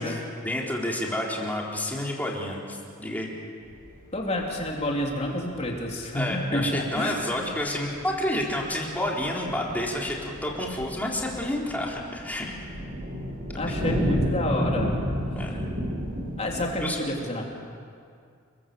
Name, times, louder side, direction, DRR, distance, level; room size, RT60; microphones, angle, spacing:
voice 1, 0.0-3.3 6.1-12.5 13.5-14.0 15.3-15.7 16.8-17.0, left 1 dB, 10° left, -2 dB, 4.1 m, -30 dB
sound 1, 3.7-16.7, equal, 40° right, 8.0 m, -32 dB
voice 2, 4.1-7.5 13.6-14.9 16.4-17.5, left 1 dB, 30° left, -1 dB, 3.8 m, -29 dB
29.5 x 22.5 x 7.8 m, 2.3 s
head